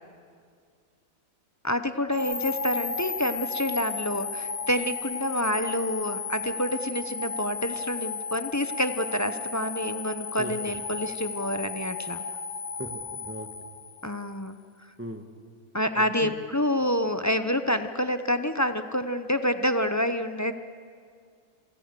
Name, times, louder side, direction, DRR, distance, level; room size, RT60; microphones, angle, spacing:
voice 1, 1.6-12.2 14.0-14.6 15.7-20.5, left 1 dB, 20° left, 9 dB, 0.5 m, -28 dB
sound 1, 2.1-14.3, left 4 dB, 90° left, 1.8 m, -34 dB
voice 2, 10.4-10.8 12.8-13.5 15.0-15.3 15.9-16.4, right 1 dB, 10° right, 6 dB, 1.4 m, -38 dB
29.0 x 23.0 x 6.8 m, 2.2 s
omnidirectional pair, 1.5 m